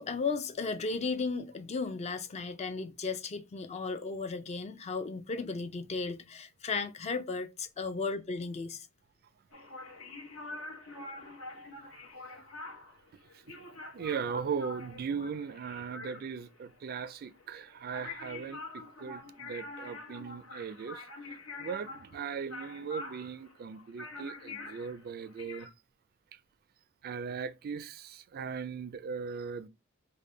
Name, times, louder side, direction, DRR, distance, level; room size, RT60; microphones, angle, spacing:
voice 1, 0.0-8.9, left 4 dB, 30° left, 0.4 m, -35 dB
sound 1, 9.5-25.7, left 2 dB, 75° left, 1.1 m, -46 dB
voice 2, 13.8-21.0 21.6-25.7 27.0-29.7, right 6 dB, 45° right, 0.3 m, -38 dB
5.2 x 2.1 x 3.1 m
head